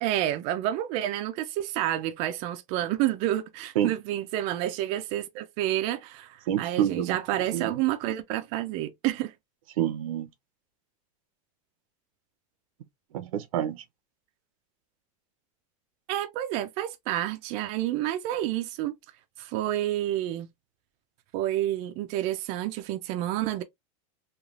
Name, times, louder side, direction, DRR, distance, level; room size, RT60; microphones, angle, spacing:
voice 1, 0.0-9.3 16.1-18.9 19.4-20.5 21.3-23.6, right 13 dB, 35° right, 0.4 m, -29 dB
voice 2, 6.5-7.2 7.5-7.7 9.8-10.3 13.1-13.8, right 10 dB, 85° right, 0.7 m, -27 dB
3.2 x 2.3 x 2.3 m
supercardioid pair, 165°, 17 cm